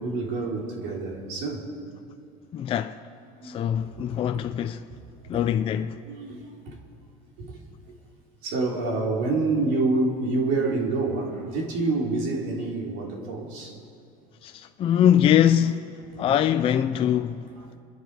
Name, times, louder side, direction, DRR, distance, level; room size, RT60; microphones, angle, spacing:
voice 1, 0.0-1.7 3.4-3.6 4.0-4.1 5.3-5.4 6.0-6.7 7.4-7.6 7.8-7.9 8.4-13.7, right 3 dB, 70° right, 3.4 m, -27 dB
voice 2, 2.5-3.0 3.4-4.9 5.3-6.0 14.4-17.5, left 10 dB, 30° left, 0.5 m, -23 dB
28.0 x 10.5 x 4.8 m
supercardioid pair, 125°, 18 cm